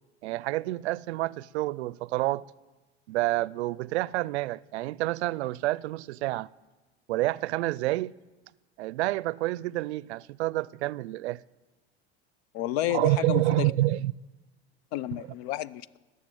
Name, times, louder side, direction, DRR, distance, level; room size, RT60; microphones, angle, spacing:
voice 1, 0.2-2.4 3.1-6.5 7.1-8.1 8.8-11.4 12.9-14.1, right 18 dB, 80° right, 0.5 m, -28 dB
voice 2, 12.5-13.7 14.9-15.9, left 14 dB, 70° left, 0.6 m, -31 dB
19.5 x 6.8 x 9.1 m
hypercardioid pair, 95°, 33 cm